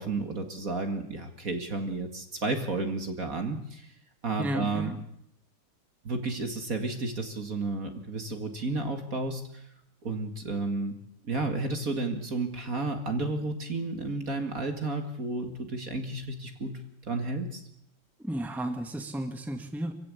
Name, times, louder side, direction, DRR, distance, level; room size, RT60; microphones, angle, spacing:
voice 1, 0.0-3.9 4.2-4.9 6.0-9.6 10.0-11.0 11.3-16.8 17.1-17.6, right 3 dB, 45° right, 5 dB, 2.5 m, -32 dB
voice 2, 4.4-5.0 18.2-19.9, right 1 dB, ahead, 5 dB, 2.0 m, -33 dB
26.0 x 16.0 x 8.6 m, 0.74 s
omnidirectional pair, 2.2 m